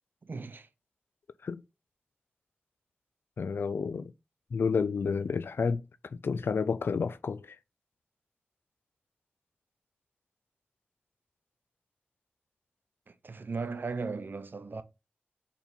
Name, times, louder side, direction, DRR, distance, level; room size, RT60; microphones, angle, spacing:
voice 1, 0.2-0.7 13.1-14.8, right 4 dB, 65° right, 0.8 m, -37 dB
voice 2, 3.4-4.1 4.5-5.8 6.2-7.6, left 5 dB, 80° left, 0.4 m, -30 dB
4.4 x 4.3 x 5.2 m
wide cardioid pair, 55°, 4 cm